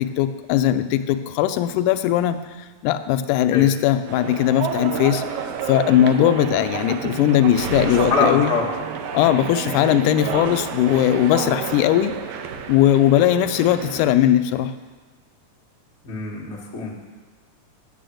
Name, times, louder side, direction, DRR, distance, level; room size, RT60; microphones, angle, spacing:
voice 1, 0.0-2.4 2.8-5.2 5.7-8.5 9.1-12.1 12.7-14.7, left 11 dB, 85° left, 11 dB, 2.0 m, -19 dB
sound 1, 4.1-14.2, right 6 dB, 75° right, 1.5 m, -30 dB
voice 2, 7.9-8.7 16.0-16.9, left 4 dB, 30° left, -4 dB, 1.4 m, -24 dB
8.9 x 6.9 x 7.7 m, 1.3 s
omnidirectional pair, 3.5 m